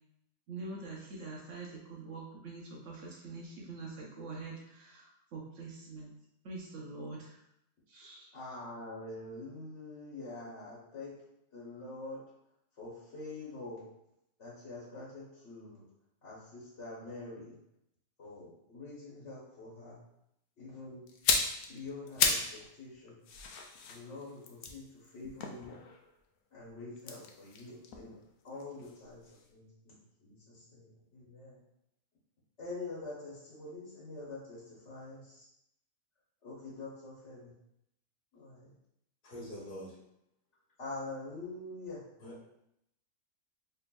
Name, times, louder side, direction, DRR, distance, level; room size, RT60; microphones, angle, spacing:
voice 1, 0.5-6.1 6.4-7.4 7.9-8.3, right 3 dB, 65° right, -2 dB, 1.0 m, -44 dB
voice 2, 8.3-11.1 11.5-12.2 12.8-13.8 14.4-15.8 16.2-17.6 18.2-20.0 20.6-21.1 21.7-23.2 23.8-25.8 26.5-28.1 28.4-29.2 29.5-31.6 32.6-35.4 36.4-37.5 38.3-38.7 40.8-42.0, left 2 dB, 55° left, -7 dB, 1.3 m, -45 dB
sound 1, 21.1-22.6 22.9-26.1 27.0-29.0 29.3-29.5, left 5 dB, 75° left, 0.9 m, -34 dB
voice 3, 39.2-40.0 42.2-42.5, equal, 40° left, -7 dB, 1.4 m, -44 dB
4.4 x 3.2 x 2.3 m, 0.80 s
omnidirectional pair, 1.5 m